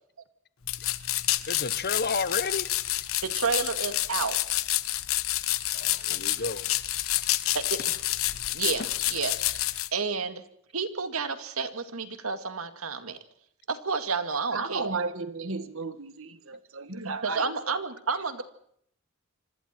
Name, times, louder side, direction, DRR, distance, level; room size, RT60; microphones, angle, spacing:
sound 1, 0.7-9.9, left 14 dB, 75° left, 1.1 m, -29 dB
voice 1, 1.5-2.7 5.7-6.7 7.2-7.4, left 4 dB, 50° left, 1.2 m, -32 dB
voice 2, 3.2-4.4 7.5-8.0 8.5-10.4 10.7-13.2 13.7-14.8 17.2-18.4, right 5 dB, 90° right, 2.2 m, -31 dB
voice 3, 14.5-17.5, right 3 dB, 70° right, 1.9 m, -33 dB
26.0 x 25.5 x 4.5 m
head